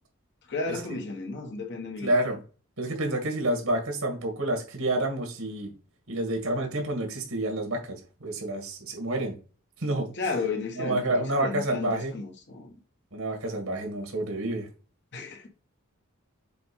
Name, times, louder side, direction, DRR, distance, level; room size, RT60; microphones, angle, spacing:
voice 1, 0.5-2.2 10.1-12.8 15.1-15.5, left 3 dB, 55° left, 1.5 m, -33 dB
voice 2, 2.0-2.4 2.8-5.7 6.1-9.3 9.8-10.1 10.8-12.1 13.1-14.7, right 1 dB, 80° right, 2.1 m, -29 dB
7.7 x 2.6 x 5.5 m
head